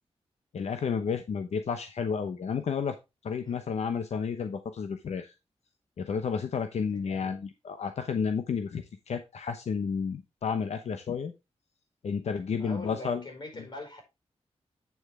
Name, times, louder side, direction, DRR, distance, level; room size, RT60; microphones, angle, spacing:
voice 1, 0.5-3.0 3.2-5.3 6.0-11.3 12.0-13.2, left 6 dB, 80° left, 0.9 m, -31 dB
voice 2, 6.9-7.3 12.6-14.0, left 1 dB, 45° left, 4.6 m, -43 dB
8.9 x 6.8 x 3.5 m
wide cardioid pair, 150°, 11 cm